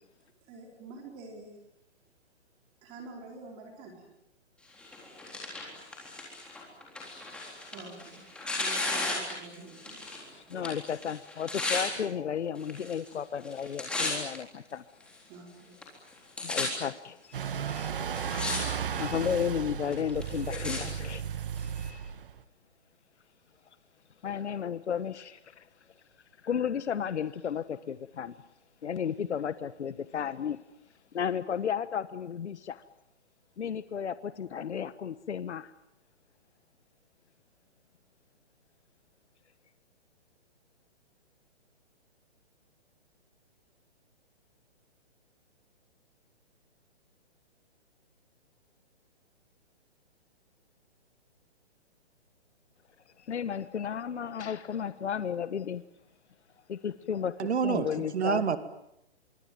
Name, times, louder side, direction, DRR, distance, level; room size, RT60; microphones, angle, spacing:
voice 1, 0.5-1.5 2.8-4.0 7.7-8.3 8.6-10.0 11.9-12.1 15.3-15.7, right 3 dB, 15° right, 2 dB, 4.4 m, -47 dB
Tearing, 4.8-10.2 10.5-11.9 12.6-13.1 13.4-14.4 15.0-15.1 15.8-16.7 17.4-17.5 18.0-18.6 18.9-19.4 19.9-20.8 21.6-21.7, left 2 dB, 5° left, 3.7 m, -34 dB
voice 2, 10.5-14.8 16.4-21.2 21.6-22.0 24.2-25.7 26.4-28.3 28.8-30.6 31.1-32.8 33.6-35.7 53.2-55.8 56.7-57.3 57.6-58.4, left 8 dB, 80° left, 14 dB, 1.3 m, -33 dB
sound 1, 17.3-22.4, right 8 dB, 50° right, 1.7 m, -35 dB
voice 3, 57.4-58.6, right 7 dB, 70° right, 11 dB, 2.4 m, -28 dB
25.5 x 24.0 x 9.2 m, 0.81 s
hypercardioid pair, 170°, 34 cm